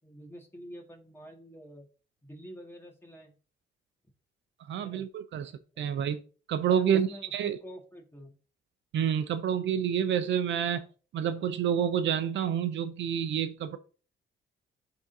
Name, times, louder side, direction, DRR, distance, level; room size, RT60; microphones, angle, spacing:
voice 1, 0.0-1.9 2.2-3.3 4.8-5.0 5.7-6.0 6.7-8.3, equal, 10° left, 2.0 m, -47 dB
voice 2, 4.7-6.2 6.5-7.6 8.9-10.9 11.1-13.8, right 8 dB, 65° right, 0.6 m, -28 dB
10.5 x 3.8 x 2.7 m
cardioid pair, 90°, 20 cm